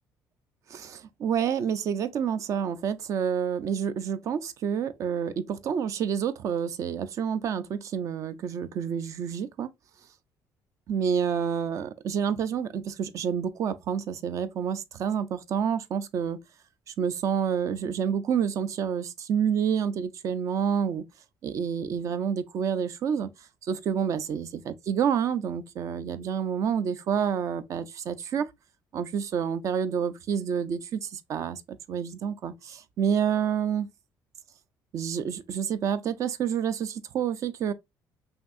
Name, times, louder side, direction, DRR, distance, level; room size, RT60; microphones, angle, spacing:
voice 1, 0.7-9.7 10.9-16.4 17.0-21.0 21.4-23.3 23.7-24.5 24.9-28.5 28.9-31.6 31.9-33.9 34.9-37.7, right 7 dB, 45° right, 0.5 m, -28 dB
5.7 x 2.7 x 2.4 m
cardioid pair, 155°, 7 cm